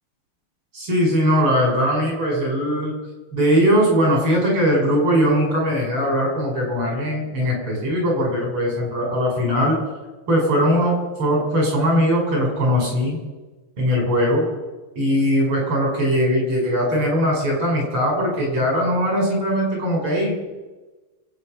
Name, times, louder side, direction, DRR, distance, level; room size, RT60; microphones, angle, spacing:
voice 1, 0.7-3.0 3.3-9.8 10.3-13.2 13.8-14.5 15.0-20.3, equal, 85° right, -1 dB, 6.6 m, -20 dB
25.5 x 9.0 x 5.8 m, 1.2 s
omnidirectional pair, 2.4 m